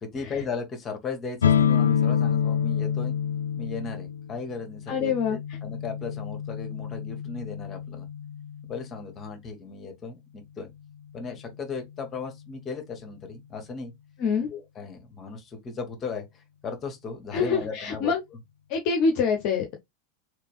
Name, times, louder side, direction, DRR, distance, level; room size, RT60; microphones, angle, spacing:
voice 1, 0.0-3.1 3.6-8.1 8.6-10.7 11.1-13.9 14.5-18.1, left 5 dB, 25° left, 1.6 m, -36 dB
sound 1, 1.4-9.0, left 8 dB, 75° left, 0.4 m, -27 dB
voice 2, 4.9-5.4 14.2-14.5 17.3-18.2 18.7-19.8, left 5 dB, 45° left, 0.8 m, -25 dB
3.3 x 3.2 x 3.4 m
figure-of-eight pair, 90°, 0 cm